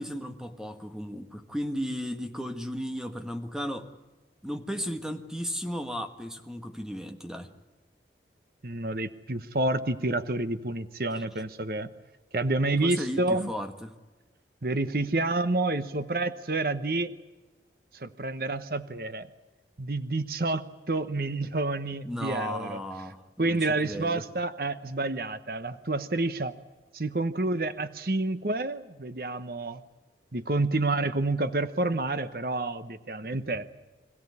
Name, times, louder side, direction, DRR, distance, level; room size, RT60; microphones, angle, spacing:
voice 1, 0.0-3.8 4.4-7.5 11.2-11.3 12.8-13.9 22.0-24.2, equal, 5° right, 6 dB, 1.6 m, -35 dB
voice 2, 8.6-11.9 12.3-13.5 14.6-17.1 17.9-19.3 19.8-22.8 23.4-26.5 26.9-29.8 30.3-33.7, right 2 dB, 55° right, 11 dB, 1.0 m, -29 dB
26.0 x 16.0 x 9.8 m, 1.2 s
head